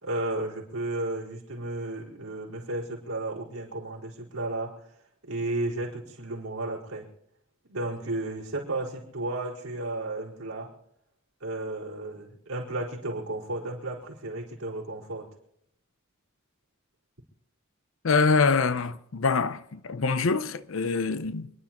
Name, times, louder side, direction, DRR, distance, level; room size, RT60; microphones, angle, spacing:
voice 1, 0.0-4.9 5.2-7.1 7.7-10.7 11.4-15.3, right 2 dB, 90° right, 4.6 m, -33 dB
voice 2, 18.0-21.5, left 4 dB, 65° left, 0.6 m, -25 dB
28.5 x 11.0 x 3.0 m
head